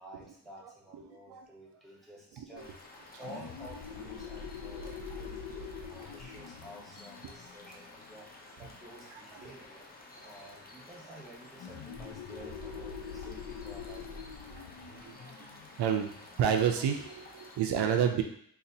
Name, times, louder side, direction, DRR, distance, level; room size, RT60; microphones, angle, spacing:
voice 1, 0.0-9.9 10.2-14.2, equal, ahead, -4 dB, 0.9 m, -51 dB
voice 2, 1.1-1.5 2.4-2.6 4.8-5.0 9.3-9.5 14.5-14.6 15.0-15.5 15.8-16.1 16.4-18.2, right 8 dB, 80° right, 4 dB, 0.5 m, -30 dB
sound 1, 2.6-17.6, left 2 dB, 25° left, 0.5 m, -52 dB
sound 2, 3.2-8.5 11.6-16.9, left 6 dB, 90° left, 0.6 m, -44 dB
4.1 x 2.4 x 2.7 m, 0.65 s
wide cardioid pair, 135°, 40 cm